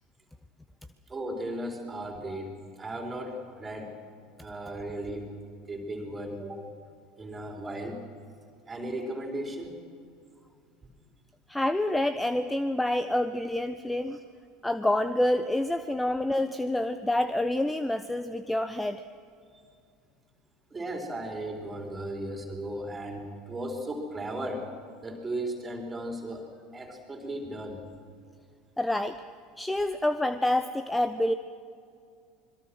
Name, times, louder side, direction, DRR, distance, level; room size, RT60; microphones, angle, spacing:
voice 1, 1.1-2.5 2.8-3.9 4.4-6.7 7.2-8.0 8.7-9.8 14.1-14.2 19.5-19.6 20.7-24.7 25.0-26.4 26.7-27.8, right 1 dB, 20° right, 2 dB, 4.5 m, -36 dB
voice 2, 11.5-14.2 14.6-19.0 28.8-29.2 29.6-31.3, left 1 dB, 5° left, 12 dB, 0.8 m, -27 dB
26.0 x 22.0 x 6.3 m, 2.4 s
figure-of-eight pair, 70°, 0 cm